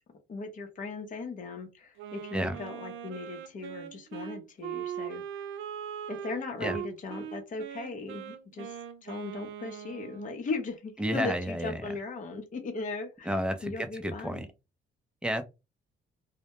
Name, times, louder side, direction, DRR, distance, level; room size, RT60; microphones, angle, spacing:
voice 1, 0.3-5.5 6.1-8.8 9.0-14.5, left 3 dB, 40° left, 0.7 m, -38 dB
Wind instrument woodwind instrument, 2.0-10.4, right 9 dB, 80° right, 0.4 m, -40 dB
voice 2, 11.0-11.7 13.3-14.5 15.2-15.4, equal, 5° right, 0.5 m, -31 dB
2.1 x 2.1 x 2.8 m
cardioid pair, 90°, 20 cm